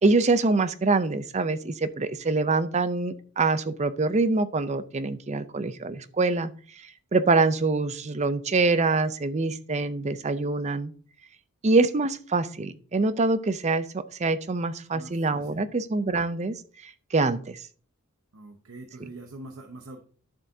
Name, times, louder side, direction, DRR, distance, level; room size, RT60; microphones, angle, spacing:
voice 1, 0.0-10.9 11.6-16.6 16.8-17.6 19.0-19.1, right 3 dB, 30° right, 13 dB, 0.5 m, -25 dB
voice 2, 14.9-15.6 18.3-20.0, right 2 dB, 60° right, 4 dB, 0.9 m, -44 dB
11.5 x 7.3 x 2.7 m, 0.43 s
head